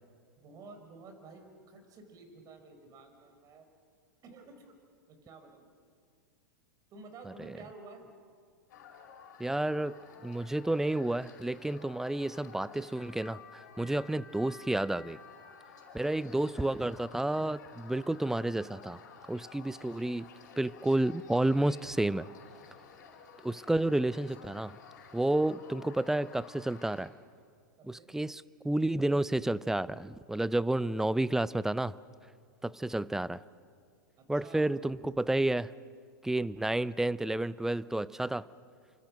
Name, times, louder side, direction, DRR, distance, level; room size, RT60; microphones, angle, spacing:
voice 1, 0.4-3.7 4.2-4.7 5.1-5.7 6.9-8.1 19.7-20.0 27.8-28.1 34.2-34.7, right 3 dB, 35° right, 6 dB, 5.3 m, -52 dB
sound 1, 8.7-27.1, left 6 dB, 65° left, 4.9 m, -53 dB
voice 2, 9.4-9.9 10.2-15.2 15.9-19.0 19.3-20.3 20.6-22.3 23.4-24.8 25.1-27.1 27.8-32.0 32.6-33.4 34.3-35.7 36.2-38.5, right 1 dB, 5° right, 19 dB, 0.6 m, -30 dB
29.0 x 25.0 x 6.5 m, 2.1 s
hypercardioid pair, 100°, 10 cm